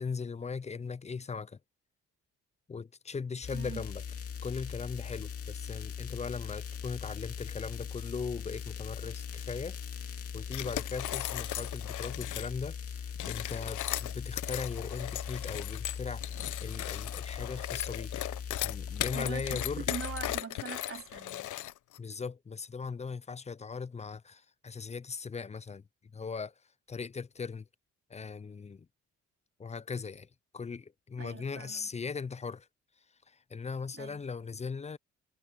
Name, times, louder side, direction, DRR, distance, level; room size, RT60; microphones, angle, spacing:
voice 1, 0.0-1.6 2.7-4.0 4.4-9.8 10.3-18.1 18.4-19.9 22.0-25.8 26.1-26.5 26.9-27.7 28.1-28.9 29.6-30.3 30.5-32.7 33.3-35.0, left 5 dB, 20° left, 0.5 m, -39 dB
sound 1, 3.4-20.4, left 7 dB, 50° left, 2.5 m, -40 dB
voice 2, 3.5-3.8 19.1-21.5 31.2-31.9 33.9-34.2, right 7 dB, 45° right, 3.5 m, -43 dB
sound 2, 10.5-12.5 13.1-22.0, left 14 dB, 80° left, 1.0 m, -37 dB
cardioid pair, 90°, 30 cm